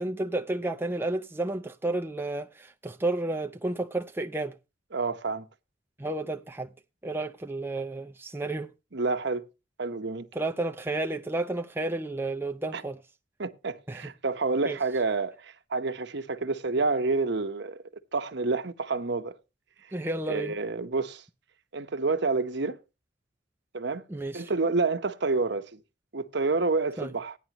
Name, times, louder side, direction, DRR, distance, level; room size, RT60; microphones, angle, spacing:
voice 1, 0.0-4.6 6.0-6.7 7.0-8.7 10.3-13.0 13.9-14.1 14.6-14.8 19.9-20.5 24.1-24.5 27.0-27.1, right 2 dB, 10° right, 0.6 m, -31 dB
voice 2, 4.9-5.5 8.9-9.4 9.8-10.3 12.7-12.8 13.4-19.4 20.3-21.2 21.7-22.8 23.7-24.0 24.3-25.8 26.1-27.4, right 3 dB, 65° right, 1.0 m, -28 dB
15.5 x 10.0 x 3.0 m
head